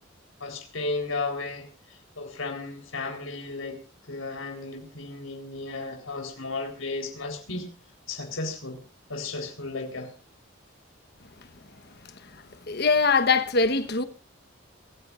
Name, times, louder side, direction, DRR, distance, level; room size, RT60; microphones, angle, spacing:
voice 1, 0.4-3.8 4.1-7.7 8.1-8.8 9.1-10.1, left 3 dB, 80° left, 4.1 m, -34 dB
voice 2, 12.7-14.0, left 4 dB, 50° left, 1.2 m, -22 dB
26.5 x 14.5 x 2.5 m
head